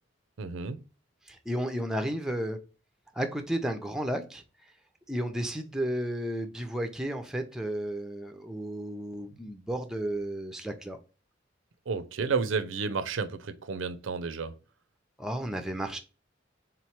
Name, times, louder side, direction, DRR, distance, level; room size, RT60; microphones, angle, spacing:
voice 1, 0.4-0.8 11.9-14.5, right 5 dB, 85° right, 0.5 m, -31 dB
voice 2, 1.3-2.6 3.1-4.4 5.1-11.0 15.2-16.0, right 1 dB, 5° right, 0.5 m, -33 dB
3.8 x 3.0 x 4.3 m
head